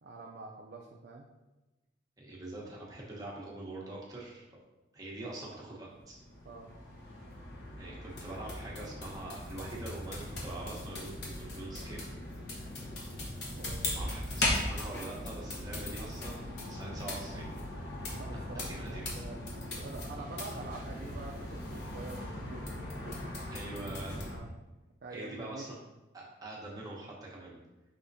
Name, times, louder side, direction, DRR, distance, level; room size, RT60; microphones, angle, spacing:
voice 1, 0.0-1.3 5.2-5.6 6.4-6.7 13.6-14.0 18.1-23.3 24.2-24.5 25.0-25.7, right 3 dB, 50° right, 0 dB, 0.3 m, -47 dB
voice 2, 2.2-4.6 4.9-6.2 7.8-12.0 13.9-17.5 18.5-19.1 23.4-24.2 25.1-25.8 26.1-27.6, right 2 dB, 20° right, -4 dB, 0.8 m, -44 dB
sound 1, 5.9-24.4, left 1 dB, 55° left, 0.9 m, -39 dB
5.0 x 3.5 x 2.6 m, 1.1 s
head